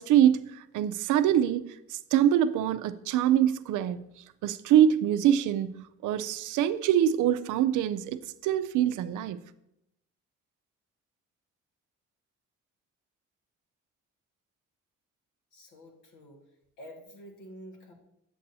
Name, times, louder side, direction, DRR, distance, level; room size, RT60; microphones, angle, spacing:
voice 1, 0.0-1.6 1.9-4.1 4.4-9.4, right 10 dB, 80° right, 0.5 m, -24 dB
voice 2, 15.5-16.4 16.8-17.9, equal, 75° left, 1.8 m, -48 dB
8.3 x 7.7 x 2.7 m
cardioid pair, 90°, 30 cm